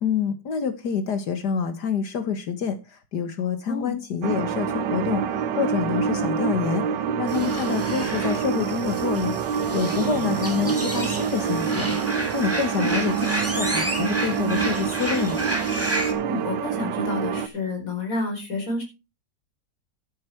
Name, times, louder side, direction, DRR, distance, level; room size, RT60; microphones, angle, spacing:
voice 1, 0.0-13.1 13.5-15.4, left 6 dB, 70° left, 10 dB, 1.9 m, -27 dB
sound 1, 4.2-17.5, right 7 dB, 80° right, 1.5 m, -26 dB
sound 2, 7.3-16.1, right 1 dB, 10° right, 2.0 m, -31 dB
voice 2, 16.2-18.8, left 2 dB, 50° left, 3 dB, 4.7 m, -29 dB
11.5 x 9.0 x 4.5 m, 0.28 s
omnidirectional pair, 1.9 m